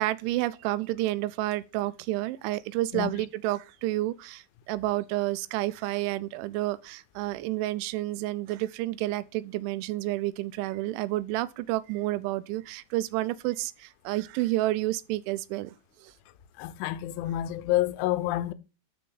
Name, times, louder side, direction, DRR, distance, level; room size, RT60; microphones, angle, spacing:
voice 1, 0.0-15.7 16.0-16.1, right 17 dB, 85° right, 2.9 m, -30 dB
voice 2, 16.6-18.5, left 14 dB, 85° left, 3.1 m, -28 dB
12.5 x 4.7 x 3.9 m
omnidirectional pair, 5.5 m